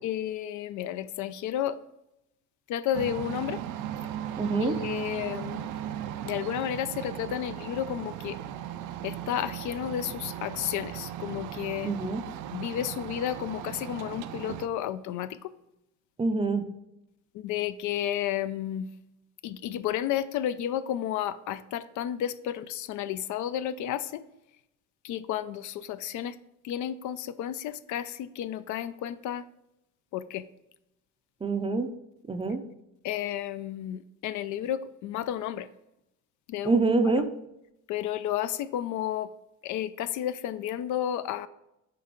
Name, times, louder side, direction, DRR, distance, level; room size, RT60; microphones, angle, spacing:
voice 1, 0.0-1.8 2.7-3.6 4.6-5.7 6.3-8.4 9.0-11.9 12.5-15.5 17.3-18.9 19.4-24.3 25.0-26.4 26.6-29.5 30.1-30.5 33.0-35.7 36.5-36.8 37.9-39.3 39.6-41.5, left 11 dB, 65° left, 14 dB, 0.4 m, -32 dB
sound 1, 2.9-14.7, right 11 dB, 70° right, 0.5 m, -37 dB
voice 2, 4.4-4.8 11.8-12.2 16.2-16.7 31.4-31.9 32.3-32.6 36.6-37.3, right 3 dB, 15° right, 8 dB, 0.5 m, -26 dB
6.7 x 4.4 x 3.8 m, 0.86 s
cardioid pair, 110°, 32 cm